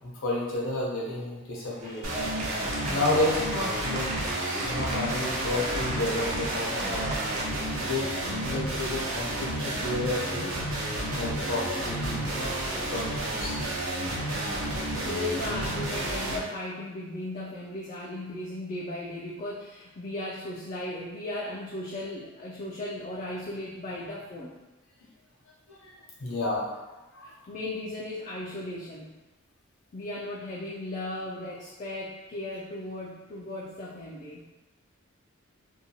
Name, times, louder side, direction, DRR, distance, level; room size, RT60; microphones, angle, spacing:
voice 1, 0.0-4.1 4.6-7.1 7.8-10.5 11.1-13.6 14.1-14.9 25.7-25.9 26.2-26.6 27.1-27.3, left 2 dB, 70° left, -4 dB, 0.8 m, -32 dB
sound 1, 1.7-7.5, right 1 dB, 35° right, 0.4 m, -36 dB
sound 2, 2.0-16.4, right 1 dB, 85° right, 0.6 m, -31 dB
voice 2, 2.8-3.1 8.2-8.6 14.5-24.5 27.2-29.1 29.9-34.4, left 1 dB, 35° left, -5 dB, 0.3 m, -36 dB
2.8 x 2.2 x 2.7 m, 1.1 s
head